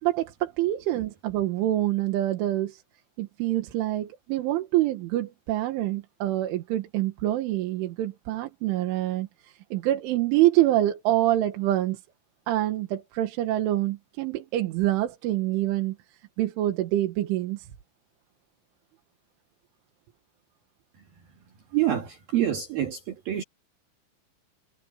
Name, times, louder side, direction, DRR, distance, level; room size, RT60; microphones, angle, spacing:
voice 1, 0.0-2.8 3.2-12.0 12.5-16.0 16.4-17.7, right 14 dB, 85° right, 4.0 m, -26 dB
voice 2, 21.7-23.4, right 12 dB, 55° right, 3.6 m, -26 dB
omnidirectional pair, 5.4 m